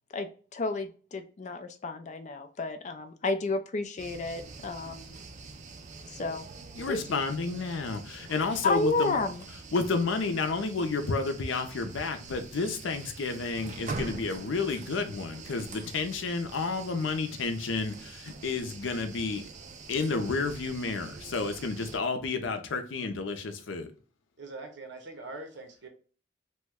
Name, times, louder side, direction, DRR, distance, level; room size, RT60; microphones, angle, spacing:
voice 1, 0.1-5.2 6.1-6.5 6.9-7.2 8.6-9.4, left 3 dB, 40° left, 0.4 m, -31 dB
sound 1, 4.0-22.0, right 4 dB, 40° right, 0.4 m, -45 dB
voice 2, 6.8-9.2 9.7-19.4 19.9-23.9, left 4 dB, 90° left, 0.5 m, -31 dB
voice 3, 24.4-25.9, right 2 dB, 65° right, 0.8 m, -42 dB
3.0 x 2.2 x 3.5 m
head